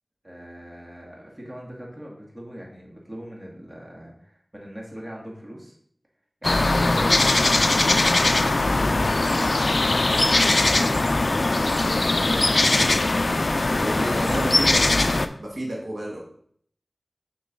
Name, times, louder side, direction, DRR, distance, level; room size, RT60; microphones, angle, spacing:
voice 1, 0.2-5.7 6.4-8.1 13.7-14.1, equal, 20° right, -3 dB, 1.9 m, -41 dB
sound 1, 6.4-15.3, left 2 dB, 60° left, 0.4 m, -20 dB
voice 2, 11.7-12.1 13.7-14.9 15.4-16.2, right 1 dB, 80° right, -4 dB, 1.6 m, -31 dB
6.4 x 3.1 x 5.3 m, 0.63 s
wide cardioid pair, 55°, 0 cm